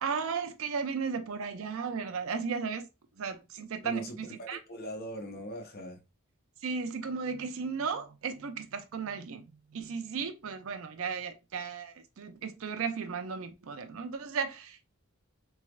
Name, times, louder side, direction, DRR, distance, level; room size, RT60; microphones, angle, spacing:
voice 1, 0.0-2.8 3.2-4.6 6.6-9.4 9.7-14.9, right 5 dB, 65° right, 0.5 m, -35 dB
voice 2, 3.8-6.0, equal, 45° left, 0.8 m, -41 dB
3.4 x 3.2 x 2.3 m
head